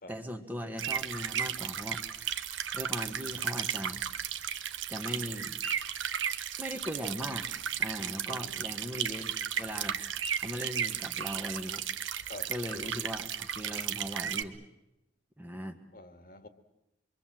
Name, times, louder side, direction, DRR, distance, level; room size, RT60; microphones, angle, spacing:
voice 1, 0.1-2.0 2.7-4.0 4.9-5.5 6.6-7.5 7.8-10.0 10.4-11.8 12.5-14.6 15.4-15.8, equal, 10° right, 1.5 m, -39 dB
sound 1, 0.8-14.4, right 9 dB, 85° right, 1.1 m, -35 dB
voice 2, 8.3-8.7 12.2-12.5 15.9-16.5, left 2 dB, 50° left, 1.9 m, -47 dB
26.0 x 23.5 x 7.6 m
head